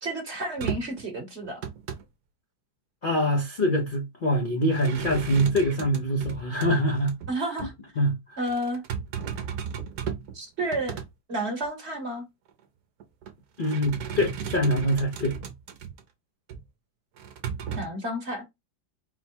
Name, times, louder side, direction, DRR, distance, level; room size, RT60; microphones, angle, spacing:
voice 1, 0.0-1.6 7.3-7.7 8.4-8.8 10.3-11.0 11.3-12.2 17.7-18.4, right 1 dB, 40° right, 1.2 m, -31 dB
sound 1, 0.6-1.0 1.4-2.0 4.7-6.7 7.1-7.3 7.6-7.7 8.5-10.3 10.6-11.1 11.6-11.7 13.0-13.3 13.6-16.0 16.5-16.6 17.2-17.9, right 7 dB, 65° right, 1.1 m, -35 dB
voice 2, 3.0-7.2 8.0-8.4 13.6-15.4, equal, 60° left, 0.5 m, -24 dB
4.3 x 2.2 x 4.3 m
omnidirectional pair, 2.1 m